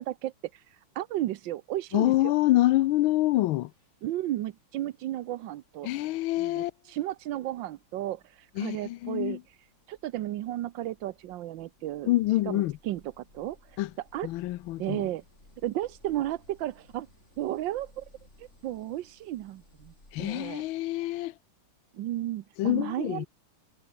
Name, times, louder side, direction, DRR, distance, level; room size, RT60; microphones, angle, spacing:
voice 1, 0.0-2.3 4.0-5.9 6.4-12.1 12.4-14.3 14.8-15.2 15.6-17.1 17.4-18.0 18.4-19.9 20.2-20.6 21.9-23.3, right 14 dB, 70° right, 1.3 m, -34 dB
voice 2, 1.9-3.7 5.8-6.7 8.6-9.4 12.1-12.7 13.8-13.9 14.2-15.0 20.1-21.3 22.6-23.3, left 16 dB, 75° left, 1.4 m, -26 dB
sound 1, 3.5-20.8, left 1 dB, 30° left, 7.6 m, -62 dB
omnidirectional pair, 2.4 m